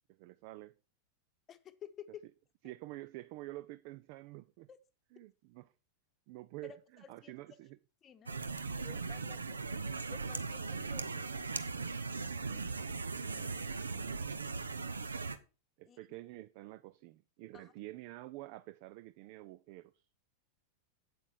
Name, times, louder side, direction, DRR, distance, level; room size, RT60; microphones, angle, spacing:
voice 1, 0.1-0.8 2.6-4.7 5.1-5.7 6.3-7.8 12.3-12.7 13.7-14.3 15.8-20.0, right 18 dB, 45° right, 0.4 m, -49 dB
voice 2, 1.5-2.2 4.7-4.8 6.6-7.3 8.0-8.4 8.7-11.3 13.2-13.8 15.9-16.0 17.5-17.7, left 8 dB, 25° left, 1.0 m, -53 dB
sound 1, 8.3-15.4, right 4 dB, 75° right, 0.8 m, -39 dB
8.5 x 8.2 x 4.6 m
figure-of-eight pair, 90°, 0 cm